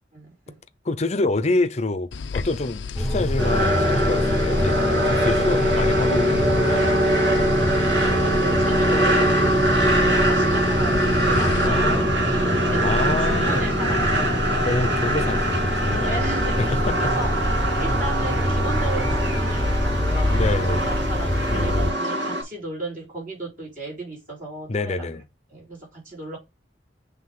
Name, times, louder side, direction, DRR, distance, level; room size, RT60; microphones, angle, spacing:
voice 1, 0.1-0.5 8.0-14.5 16.0-25.2 25.5-26.4, right 2 dB, 45° right, 4.0 m, -35 dB
voice 2, 0.8-6.9 7.8-8.0 11.6-12.3 12.8-13.6 14.6-16.3 16.9-17.1 20.3-20.9 21.5-21.9 24.7-25.2, left 2 dB, 40° left, 0.6 m, -27 dB
sound 1, 2.1-11.7, left 4 dB, 90° left, 0.5 m, -34 dB
sound 2, 3.0-21.9, equal, 5° left, 0.9 m, -26 dB
sound 3, 3.4-22.4, right 1 dB, 75° right, 2.1 m, -23 dB
7.6 x 3.4 x 3.7 m
head